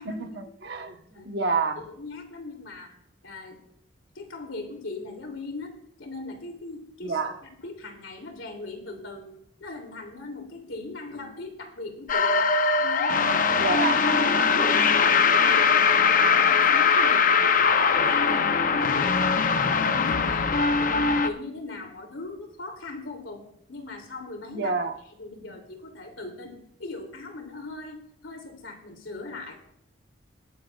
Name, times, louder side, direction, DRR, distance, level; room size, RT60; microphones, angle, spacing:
voice 1, 0.0-0.9 1.2-1.8 7.0-7.4 13.6-14.0 15.0-15.3 24.5-25.0 25.4-25.5, right 4 dB, 55° right, 6 dB, 1.1 m, -29 dB
voice 2, 0.9-1.3 1.8-2.9 3.2-3.6 4.1-9.3 9.6-12.5 12.8-13.8 14.1-14.8 15.2-17.6 18.0-23.4 23.7-24.7 25.2-29.7, left 3 dB, 85° left, 3 dB, 2.9 m, -39 dB
sound 1, 12.1-21.3, left 5 dB, 45° left, 0.7 m, -21 dB
21.0 x 9.8 x 2.4 m, 0.72 s
head